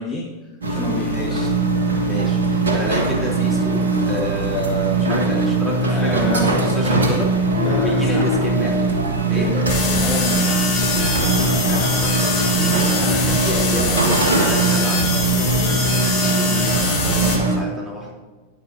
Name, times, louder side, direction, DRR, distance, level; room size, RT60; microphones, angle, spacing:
voice 1, 0.0-1.1 5.9-6.5 7.6-8.4 9.3-10.7, left 2 dB, 20° left, -4 dB, 2.1 m, -29 dB
sound 1, 0.6-17.6, right 2 dB, 70° right, 1.7 m, -20 dB
voice 2, 0.9-1.6 2.0-8.8 9.3-9.5 11.6-18.1, equal, 10° right, -3 dB, 3.8 m, -30 dB
sound 2, 9.7-17.3, left 4 dB, 45° left, 3.3 m, -23 dB
15.0 x 9.5 x 2.9 m, 1.3 s
figure-of-eight pair, 90°, 0 cm